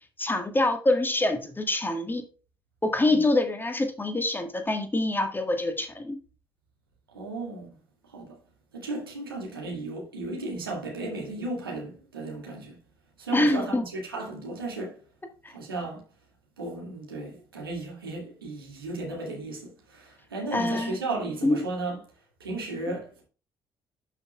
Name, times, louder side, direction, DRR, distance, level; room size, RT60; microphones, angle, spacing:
voice 1, 0.2-2.2 2.8-6.2 13.3-13.8 15.4-15.5 20.5-21.0 21.4-21.6, left 2 dB, 15° left, 1.6 m, -25 dB
voice 2, 7.1-7.8 8.1-8.4 8.7-12.8 13.2-15.0 15.5-16.0 16.6-22.0 22.4-23.3, right 2 dB, 80° right, 2.1 m, -35 dB
11.5 x 5.8 x 2.3 m
figure-of-eight pair, 45°, 12 cm